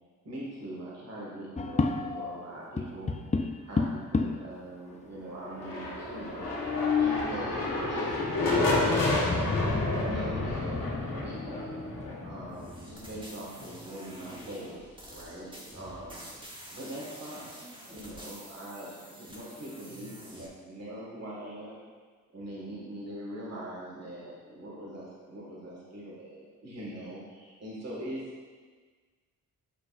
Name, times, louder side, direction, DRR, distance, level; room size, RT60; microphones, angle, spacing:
voice 1, 0.3-3.1 3.6-6.5 7.0-9.2 9.9-11.8 12.2-16.2 16.7-21.8 22.3-28.2, right 1 dB, 45° right, -6 dB, 1.8 m, -42 dB
sound 1, 1.6-2.4 2.8-4.6 5.3-5.4 5.6-5.7 6.4-7.3 9.0-9.2 9.7-10.1 10.6-10.7 11.2-12.1, left 5 dB, 20° left, 0.4 m, -31 dB
sound 2, 5.5-13.2, left 2 dB, 65° left, 1.5 m, -30 dB
sound 3, 12.5-20.5, equal, 15° right, 1.1 m, -47 dB
7.7 x 5.1 x 2.5 m, 1.5 s
cardioid pair, 55°, 36 cm